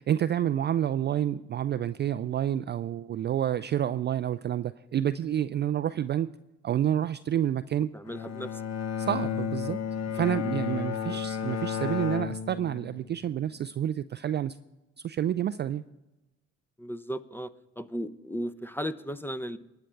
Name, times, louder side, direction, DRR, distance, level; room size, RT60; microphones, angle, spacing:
voice 1, 0.0-6.4 6.6-7.9 9.0-9.8 10.1-14.6 15.0-15.8, right 10 dB, 30° right, 12 dB, 0.4 m, -29 dB
voice 2, 7.9-8.6 10.1-10.3 11.0-11.2 16.8-17.5 17.8-19.6, equal, 5° left, 14 dB, 0.6 m, -36 dB
Bowed string instrument, 8.0-13.3, left 7 dB, 50° left, 1.0 m, -32 dB
19.5 x 8.7 x 3.4 m, 0.99 s
hypercardioid pair, 55°, 34 cm